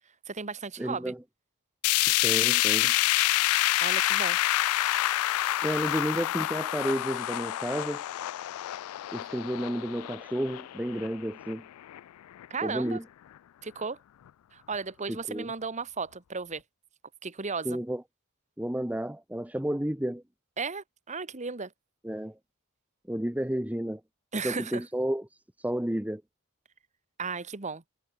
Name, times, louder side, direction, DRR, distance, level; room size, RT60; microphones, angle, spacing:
voice 1, 0.3-1.1 3.8-4.4 5.6-5.7 12.5-13.0 13.6-14.0 14.5-16.6 17.2-17.8 20.6-21.7 24.3-24.8 27.2-27.8, right 4 dB, 35° right, 1.4 m, -35 dB
voice 2, 0.8-1.2 2.2-2.9 5.6-8.0 9.1-11.6 12.6-13.0 15.1-15.5 17.6-18.0 18.6-20.2 22.0-22.4 23.1-24.0 24.4-25.3 25.6-26.2, right 1 dB, 5° right, 1.0 m, -31 dB
sound 1, 1.8-12.0 12.4-12.5 12.9-13.0 13.8-13.9, left 16 dB, 90° left, 0.3 m, -28 dB
head